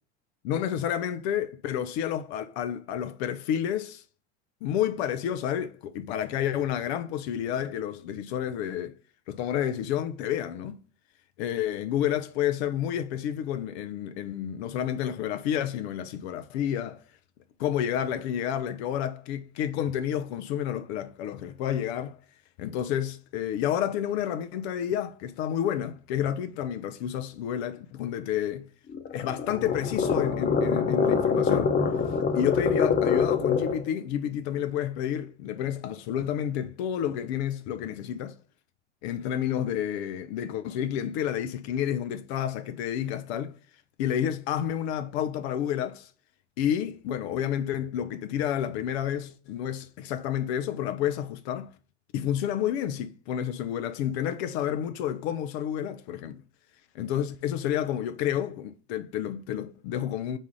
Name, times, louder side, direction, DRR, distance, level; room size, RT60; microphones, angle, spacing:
voice 1, 0.4-4.0 4.6-8.9 9.3-10.8 11.4-17.0 17.6-22.2 22.6-28.7 29.1-31.7 32.3-38.3 39.0-43.5 44.0-46.1 46.6-51.7 52.1-56.4 56.9-60.4, left 10 dB, 60° left, 0.5 m, -30 dB
sound 1, 28.9-33.9, left 6 dB, 30° left, 0.8 m, -25 dB
4.2 x 2.4 x 4.5 m
hypercardioid pair, 75°, 36 cm